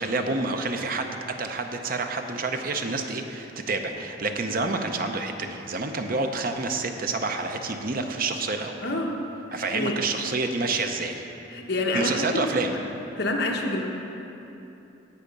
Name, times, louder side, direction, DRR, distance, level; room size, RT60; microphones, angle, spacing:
voice 1, 0.0-8.8 9.5-11.2 11.9-12.7, right 3 dB, 45° right, 5 dB, 0.7 m, -28 dB
voice 2, 8.8-9.2 9.5-10.0 11.5-12.8 13.2-13.9, left 2 dB, 55° left, 1 dB, 1.2 m, -27 dB
17.0 x 5.8 x 5.2 m, 2.9 s
head